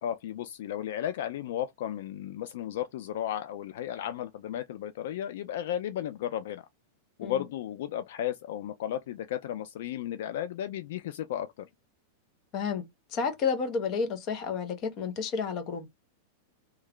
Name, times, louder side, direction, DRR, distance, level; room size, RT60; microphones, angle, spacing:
voice 1, 0.0-6.7 7.2-11.7, left 11 dB, 65° left, 0.3 m, -34 dB
voice 2, 12.5-12.8 13.1-15.9, left 5 dB, 30° left, 0.8 m, -31 dB
3.1 x 2.3 x 3.6 m
supercardioid pair, 165°, 0 cm